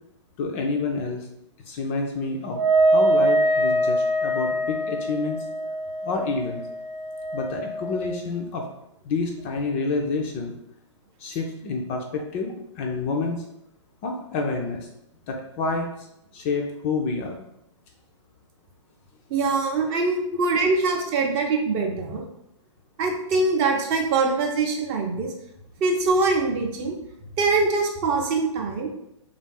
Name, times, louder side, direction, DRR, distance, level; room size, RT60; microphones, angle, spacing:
voice 1, 0.4-1.3 1.6-2.6 2.9-5.4 6.0-6.6 7.3-8.7 9.0-10.5 11.2-13.4 14.0-14.9 15.3-16.1 16.3-17.4, left 3 dB, 25° left, 2 dB, 0.4 m, -28 dB
Wind instrument woodwind instrument, 2.5-8.2, right 1 dB, 70° right, 0.8 m, -23 dB
voice 2, 19.3-22.2 23.0-25.3 25.8-27.0 27.4-28.9, right 3 dB, 25° right, 2 dB, 0.6 m, -23 dB
3.4 x 2.5 x 3.9 m, 0.80 s
figure-of-eight pair, 115°, 16 cm